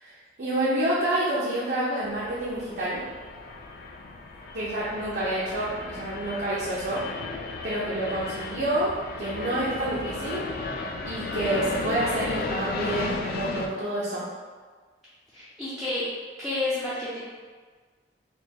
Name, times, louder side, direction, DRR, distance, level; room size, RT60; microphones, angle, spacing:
voice 1, 0.0-3.0 4.5-7.0 7.6-10.4 11.1-14.3, right 1 dB, 65° right, -8 dB, 0.7 m, -28 dB
sound 1, 2.0-13.7, left 3 dB, 55° left, 0.3 m, -34 dB
voice 2, 15.3-16.1 16.4-17.2, left 2 dB, ahead, -12 dB, 0.6 m, -30 dB
4.4 x 2.4 x 2.9 m, 1.5 s
head